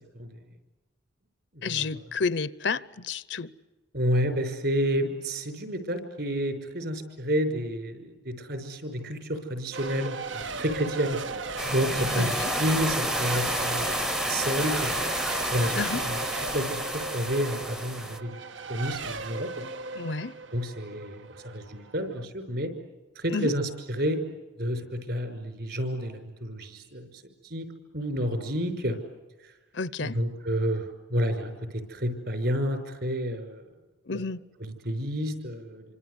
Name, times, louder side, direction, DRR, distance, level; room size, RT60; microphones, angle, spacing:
voice 1, 1.6-3.5 12.1-12.5 15.7-16.0 19.9-20.3 23.3-23.5 29.7-30.2 34.1-34.4, left 4 dB, 65° left, 18 dB, 0.8 m, -30 dB
voice 2, 3.9-11.2 11.7-14.9 15.5-16.2 16.5-18.4 18.7-19.7 20.5-22.7 23.2-24.2 24.6-27.1 27.4-27.7 27.9-29.0 30.0-33.6 34.1-34.2 34.6-35.8, equal, 55° right, 8 dB, 5.6 m, -30 dB
Race car auto racing / Accelerating revving vroom / Mechanisms, 9.7-22.2, right 4 dB, 75° right, 1.5 m, -37 dB
sound 1, 11.6-18.2, equal, 5° right, 0.8 m, -30 dB
28.0 x 25.5 x 8.2 m, 1.1 s
head